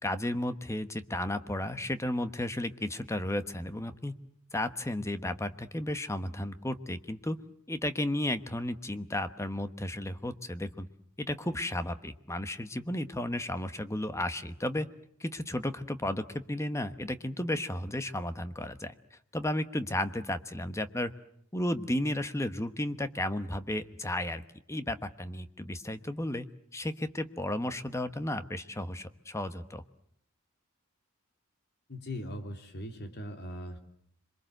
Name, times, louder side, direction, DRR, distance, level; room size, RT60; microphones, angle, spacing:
voice 1, 0.0-4.1 4.5-7.4 7.7-10.9 11.2-14.9 15.2-18.9 19.3-21.1 21.5-24.4 24.7-26.4 26.7-29.8, left 1 dB, 15° left, 11 dB, 1.1 m, -33 dB
voice 2, 31.9-33.8, left 1 dB, 50° left, 5 dB, 3.2 m, -40 dB
27.0 x 23.5 x 7.8 m, 0.68 s
head